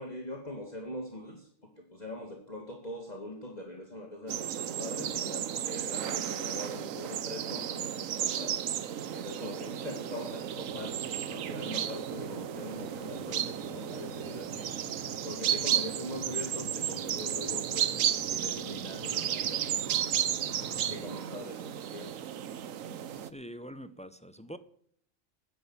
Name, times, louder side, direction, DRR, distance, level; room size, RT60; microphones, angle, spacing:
voice 1, 0.0-1.5 1.8-8.6 9.1-14.7 15.2-19.8 20.9-22.1, left 1 dB, 30° left, 2.1 m, -42 dB
sound 1, 4.3-23.3, right 10 dB, 90° right, 1.2 m, -33 dB
sound 2, 10.5-21.0, left 1 dB, 80° left, 2.5 m, -50 dB
voice 2, 20.6-21.1 23.2-24.6, equal, 10° left, 0.5 m, -46 dB
11.0 x 10.5 x 7.2 m
omnidirectional pair, 1.4 m